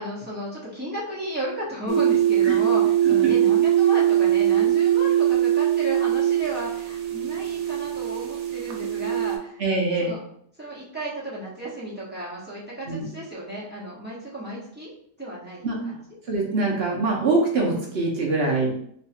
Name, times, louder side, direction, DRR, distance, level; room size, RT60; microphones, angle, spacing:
voice 1, 0.0-9.6 10.0-10.2 10.6-14.9 15.2-15.7, right 1 dB, 5° right, -8 dB, 1.0 m, -34 dB
sound 1, 1.9-9.4, right 11 dB, 75° right, 1.2 m, -21 dB
voice 2, 3.0-3.3 9.6-10.1 12.9-13.1 15.6-15.8 16.3-18.7, right 3 dB, 50° right, -2 dB, 0.7 m, -24 dB
3.2 x 2.3 x 4.2 m, 0.67 s
omnidirectional pair, 1.8 m